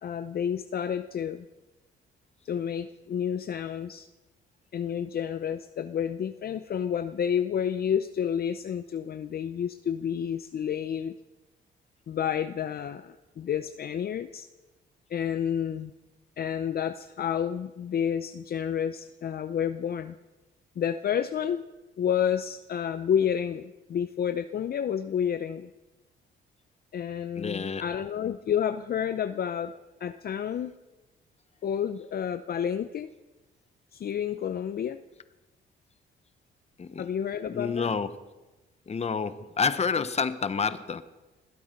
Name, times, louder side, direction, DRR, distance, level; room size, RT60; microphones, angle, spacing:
voice 1, 0.0-1.4 2.4-4.1 4.7-11.1 12.1-14.5 15.1-15.9 16.4-20.1 20.8-21.7 22.0-25.7 26.9-29.7 30.0-30.7 31.6-33.1 33.9-35.0 37.0-38.0, left 8 dB, 50° left, 10 dB, 0.7 m, -30 dB
voice 2, 27.4-27.8 36.8-37.1 37.5-38.1 38.9-41.0, left 5 dB, 35° left, 13 dB, 1.1 m, -29 dB
21.0 x 13.0 x 5.3 m, 1.1 s
cardioid pair, 90°, 20 cm